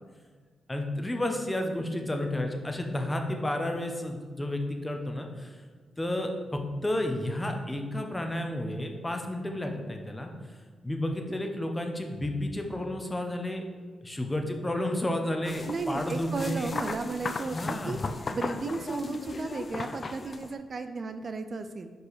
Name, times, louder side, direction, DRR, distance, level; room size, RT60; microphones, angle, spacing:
voice 1, 0.7-5.6 6.0-10.6 10.8-13.6 14.0-16.7 17.5-18.1, left 1 dB, 15° left, 4 dB, 0.9 m, -31 dB
sound 1, 15.5-20.5, left 4 dB, 45° left, 0.4 m, -36 dB
voice 2, 15.7-18.0 18.3-21.9, right 4 dB, 50° right, 9 dB, 0.4 m, -34 dB
4.9 x 4.9 x 4.1 m, 1.5 s
cardioid pair, 60°, 0 cm